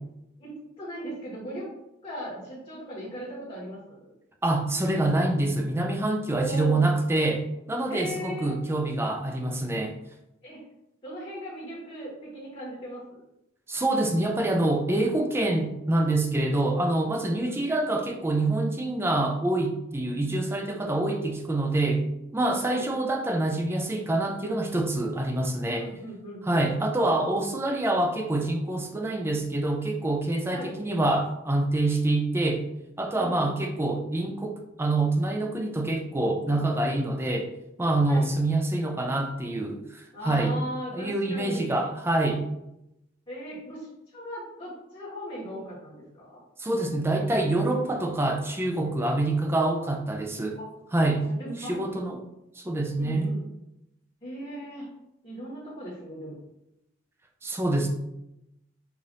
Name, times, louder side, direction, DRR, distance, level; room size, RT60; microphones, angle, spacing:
voice 1, 0.4-1.7 2.0-4.0 6.3-6.9 7.9-8.5 10.4-10.6 11.0-13.0 17.2-17.6 20.1-20.5 22.6-22.9 25.7-26.6 30.5-30.7 33.1-33.6 36.5-36.9 38.0-38.3 40.1-41.9 43.3-46.3 50.5-50.6 51.2-51.9 53.0-53.4 54.2-54.9 55.2-56.4, equal, 25° left, -10 dB, 1.3 m, -38 dB
voice 2, 4.4-10.0 13.7-22.0 22.3-25.9 26.4-32.6 33.0-37.5 37.8-40.6 40.9-42.4 46.6-50.6 50.9-51.2 51.6-52.2 52.6-53.3 57.4-57.9, right 2 dB, 15° right, 3 dB, 0.4 m, -26 dB
4.8 x 2.6 x 2.6 m, 0.86 s
head